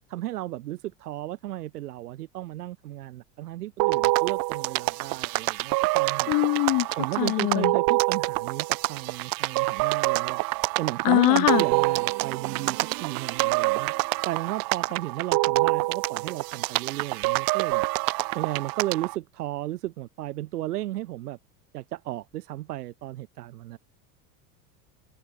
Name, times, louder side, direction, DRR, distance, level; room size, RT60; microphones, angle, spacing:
voice 1, 0.1-6.3 6.9-10.4 10.8-13.9 14.2-17.8 18.3-21.4 21.7-23.8, right 15 dB, 80° right, 4.9 m, -34 dB
sound 1, 3.8-19.2, right 23 dB, 50° right, 0.9 m, -26 dB
voice 2, 6.3-6.9 7.2-7.7 11.0-11.6, left 22 dB, 45° left, 0.8 m, -22 dB
hypercardioid pair, 90°, 45 cm